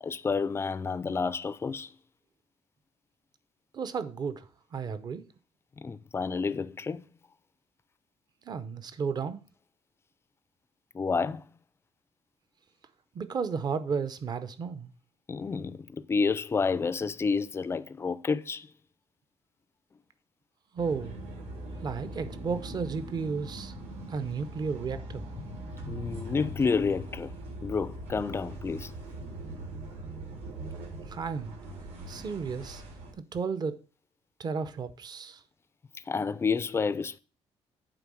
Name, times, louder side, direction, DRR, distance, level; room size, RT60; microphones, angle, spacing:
voice 1, 0.0-1.9 5.8-7.0 10.9-11.4 15.3-18.7 25.9-27.3 27.6-28.9 36.1-37.2, left 5 dB, 25° left, 0.4 m, -30 dB
voice 2, 3.7-4.5 4.7-5.2 8.4-9.4 13.1-14.9 20.7-21.2 21.8-23.7 24.1-25.2 31.1-31.6 32.1-32.8 33.1-33.8 34.4-35.4, right 5 dB, 40° right, 0.7 m, -33 dB
sound 1, 20.8-33.1, right 1 dB, 70° right, 3.9 m, -41 dB
9.0 x 3.7 x 6.2 m
cardioid pair, 150°, 11 cm